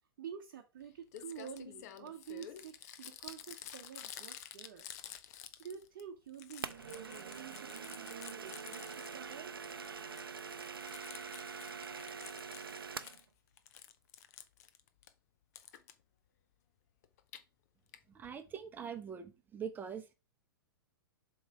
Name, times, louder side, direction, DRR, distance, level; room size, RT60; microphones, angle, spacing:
voice 1, 0.2-4.9 5.6-9.5, right 8 dB, 45° right, 0.9 m, -49 dB
Crumpling crinkling, 0.8-0.9 1.1-6.0 6.3-9.3 9.6-13.2 13.6-15.1 15.5-15.9 17.0-17.4 17.9-18.0 18.2-18.3 18.5-18.6, left 10 dB, 45° left, 0.7 m, -51 dB
sound 1, 6.6-13.2, right 6 dB, 75° right, 0.5 m, -45 dB
voice 2, 18.1-20.1, right 7 dB, 15° right, 0.9 m, -43 dB
7.4 x 3.1 x 4.6 m
figure-of-eight pair, 105°, 12 cm